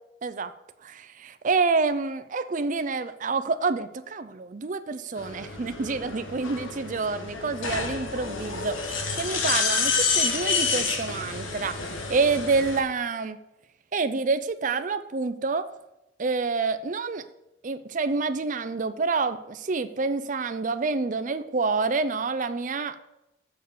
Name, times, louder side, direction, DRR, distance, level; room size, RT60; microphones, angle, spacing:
voice 1, 0.8-13.4 13.9-15.7 16.2-17.2 17.6-23.0, right 4 dB, 40° right, 10 dB, 0.5 m, -28 dB
sound 1, 5.2-12.8, left 4 dB, 90° left, 1.3 m, -29 dB
7.1 x 6.6 x 6.7 m, 0.92 s
head